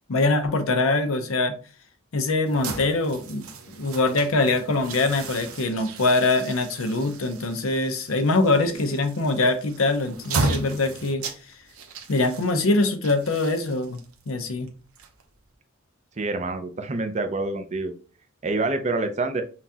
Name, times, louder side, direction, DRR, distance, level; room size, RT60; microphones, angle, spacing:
voice 1, 0.1-1.6 2.1-11.3 12.1-14.0 14.3-14.7, left 2 dB, 70° left, 0.7 m, -23 dB
sound 1, 2.5-15.5, right 3 dB, 90° right, 0.8 m, -35 dB
voice 2, 16.2-17.9 18.4-19.4, right 3 dB, 35° right, 0.6 m, -27 dB
5.8 x 2.3 x 2.8 m
head